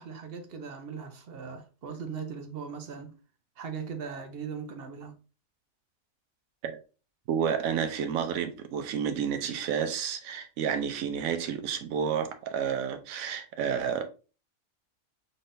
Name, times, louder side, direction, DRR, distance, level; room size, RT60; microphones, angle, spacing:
voice 1, 0.0-3.1 3.6-5.1, right 6 dB, 55° right, 0.8 m, -39 dB
voice 2, 7.3-14.1, right 7 dB, 85° right, 1.1 m, -30 dB
3.8 x 3.7 x 2.5 m
omnidirectional pair, 1.4 m